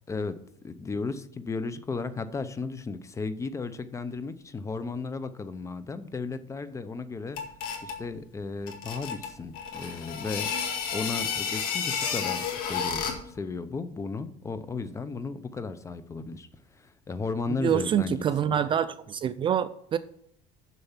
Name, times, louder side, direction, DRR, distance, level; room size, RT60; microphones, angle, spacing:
voice 1, 0.6-7.4 7.8-16.5 16.7-18.2, left 4 dB, 20° left, 13 dB, 0.7 m, -35 dB
sound 1, 7.4-8.0 8.7-13.3, left 6 dB, 65° left, 2.1 m, -31 dB
voice 2, 17.6-20.0, right 9 dB, 30° right, 14 dB, 0.4 m, -26 dB
6.9 x 6.8 x 7.3 m, 0.69 s
cardioid pair, 135°, 16 cm